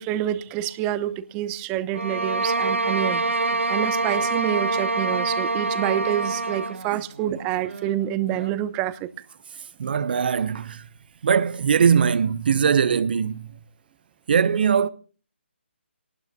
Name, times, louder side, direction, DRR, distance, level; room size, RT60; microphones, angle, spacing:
voice 1, 0.0-3.2 3.7-9.1, right 12 dB, 20° right, 0.8 m, -27 dB
sound 1, 1.9-6.8, right 3 dB, 90° right, 0.9 m, -25 dB
sound 2, 3.3-8.5, right 4 dB, 70° right, 2.2 m, -45 dB
voice 2, 9.8-10.9 11.2-13.5 14.3-14.9, right 7 dB, 50° right, 0.7 m, -21 dB
27.5 x 19.0 x 2.3 m
figure-of-eight pair, 150°, 7 cm